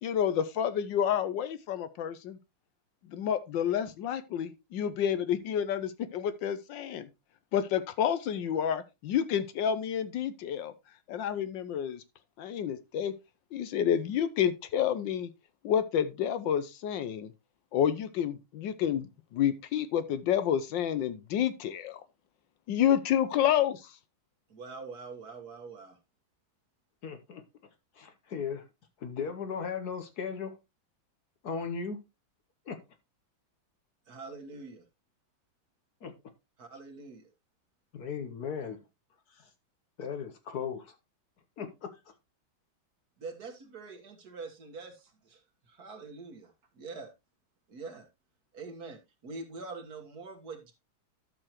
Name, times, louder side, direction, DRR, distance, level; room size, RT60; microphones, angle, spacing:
voice 1, 0.0-2.4 3.1-7.1 7.5-10.7 11.1-12.0 12.4-13.1 13.5-15.3 15.6-17.3 17.7-22.0 22.7-24.0, left 9 dB, 75° left, 1.3 m, -29 dB
voice 2, 24.5-26.0 34.1-34.8 36.6-37.3 43.2-45.4 45.7-47.1 47.7-48.1 48.5-50.7, right 4 dB, 50° right, 1.8 m, -44 dB
voice 3, 27.0-27.4 28.0-28.6 29.0-30.6 31.4-32.0 32.7-32.8 36.0-36.1 37.9-38.8 39.3-39.4 40.0-40.9 41.6-41.9, left 6 dB, 60° left, 1.3 m, -36 dB
12.0 x 6.7 x 3.0 m
omnidirectional pair, 2.2 m